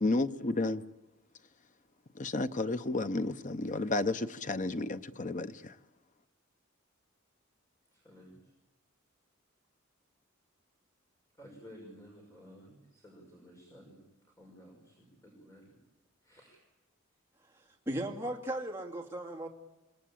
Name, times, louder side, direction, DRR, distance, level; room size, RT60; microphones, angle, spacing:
voice 1, 0.0-0.8 2.1-5.8, left 2 dB, 40° left, 0.8 m, -32 dB
voice 2, 7.9-8.5 11.4-14.0 14.4-15.7 16.2-16.6, equal, 15° left, 5.8 m, -54 dB
voice 3, 17.5-19.5, right 1 dB, 10° right, 2.7 m, -37 dB
28.5 x 18.5 x 8.7 m
head